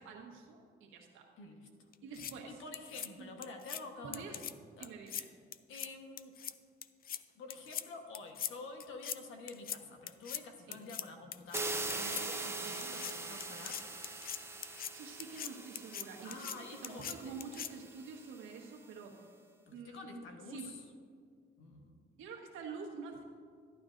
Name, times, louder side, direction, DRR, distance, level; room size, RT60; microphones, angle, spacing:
voice 1, 0.0-1.3 2.0-2.6 3.2-3.3 4.0-4.4 4.8-5.3 10.7-10.8 12.6-12.8 14.9-19.3 19.7-20.2 20.5-20.7 22.2-23.2, right 5 dB, 90° right, 0 dB, 1.5 m, -47 dB
voice 2, 1.4-1.7 2.5-4.4 4.8-4.9 5.7-6.3 7.3-13.8 16.2-17.3 19.7-20.8 21.6-22.0, left 3 dB, 85° left, 4 dB, 1.2 m, -49 dB
sound 1, 1.9-2.3 2.7-3.1 3.4-3.8 4.1-4.5 4.8-5.2 5.5-5.9 6.2-6.5 6.8-7.2 7.5-7.8 8.1-8.5 8.8-9.2 9.5-9.8 10.1-10.4 10.7-11.0 11.3-11.6 11.9-12.2 12.8-13.1 13.4-14.9 15.2-15.5 15.8-16.0 16.3-16.6 16.8-17.1 17.4-17.7, left 10 dB, 50° left, 0.4 m, -41 dB
sound 2, 11.5-18.4, right 3 dB, 15° right, 0.8 m, -42 dB
12.0 x 11.0 x 2.6 m, 2.1 s
cardioid pair, 90°, 20 cm